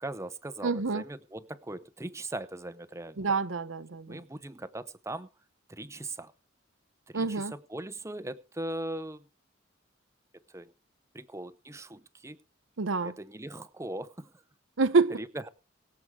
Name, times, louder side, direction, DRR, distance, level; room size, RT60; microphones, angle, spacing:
voice 1, 0.0-3.2 4.1-5.3 5.7-6.3 7.1-9.3 10.5-10.7 11.1-12.4 13.0-14.3 15.2-15.5, right 1 dB, 15° right, 0.7 m, -39 dB
voice 2, 0.6-1.0 3.2-4.2 7.1-7.5 12.8-13.2 14.8-15.2, right 4 dB, 85° right, 0.8 m, -27 dB
22.0 x 7.8 x 3.6 m
head